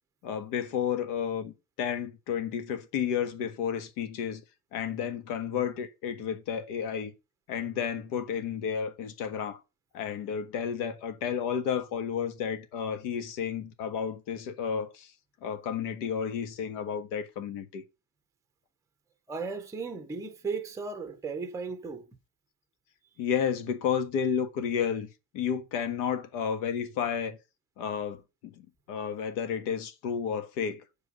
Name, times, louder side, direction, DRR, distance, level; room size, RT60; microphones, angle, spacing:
voice 1, 0.2-4.4 4.7-7.1 7.5-9.6 9.9-15.1 15.4-17.8 23.2-25.1 25.3-27.4 27.8-30.8, left 7 dB, 60° left, 1.5 m, -32 dB
voice 2, 19.3-22.1, right 4 dB, 5° right, 0.8 m, -36 dB
6.7 x 4.8 x 6.7 m
cardioid pair, 150°, 46 cm